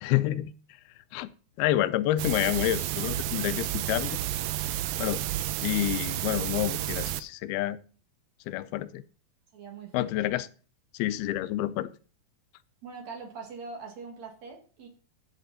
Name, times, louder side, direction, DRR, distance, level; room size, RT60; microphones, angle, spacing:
voice 1, 0.0-0.5 1.1-1.3 1.6-4.2 5.0-5.2 5.6-7.8 8.5-9.0 9.9-10.5 10.9-11.9, left 14 dB, 85° left, 14 dB, 2.5 m, -28 dB
sound 1, 2.2-7.2, right 13 dB, 80° right, 2.4 m, -31 dB
voice 2, 9.5-10.1 12.8-14.9, right 5 dB, 50° right, 1 dB, 3.2 m, -42 dB
14.5 x 6.1 x 4.1 m, 0.39 s
omnidirectional pair, 4.4 m